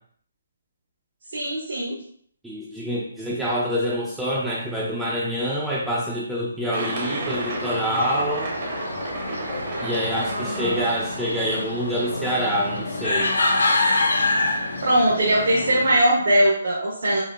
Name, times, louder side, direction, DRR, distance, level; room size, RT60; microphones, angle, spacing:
voice 1, 1.3-1.9 10.3-10.8 14.8-17.2, right 1 dB, 65° right, -5 dB, 0.9 m, -21 dB
voice 2, 2.4-8.5 9.8-13.4, equal, 5° right, -6 dB, 0.4 m, -26 dB
sound 1, 6.7-11.7, right 2 dB, 35° right, 0.7 m, -32 dB
sound 2, 6.9-16.0, left 2 dB, 85° left, 0.8 m, -27 dB
4.3 x 2.8 x 2.4 m, 0.62 s
hypercardioid pair, 160°, 0 cm